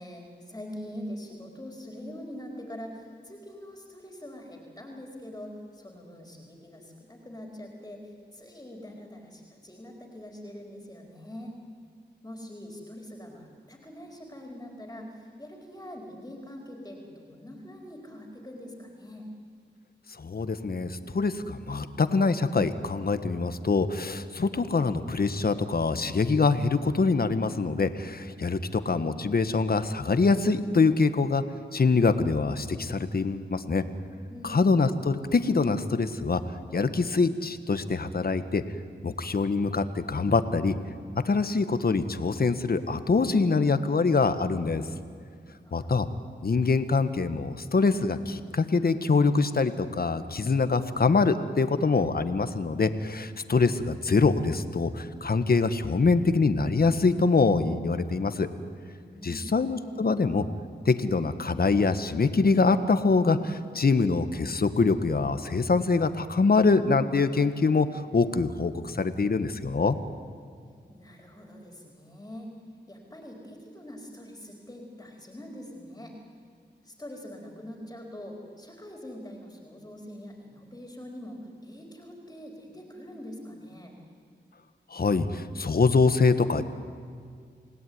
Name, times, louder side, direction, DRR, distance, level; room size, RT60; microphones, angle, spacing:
voice 1, 0.0-11.5 12.2-19.3 34.3-34.6 45.5-45.9 58.9-59.5 70.9-72.5 72.9-76.1 76.8-83.9, equal, 15° left, 0 dB, 4.5 m, -43 dB
voice 2, 20.2-31.4 31.7-33.8 34.4-36.4 36.7-38.6 39.0-40.7 41.2-44.8 45.7-46.1 46.4-58.5 59.2-60.4 60.8-67.9 68.1-70.0 84.9-86.6, left 4 dB, 55° left, 10 dB, 1.5 m, -24 dB
29.0 x 18.0 x 9.6 m, 2.1 s
cardioid pair, 65°, 19 cm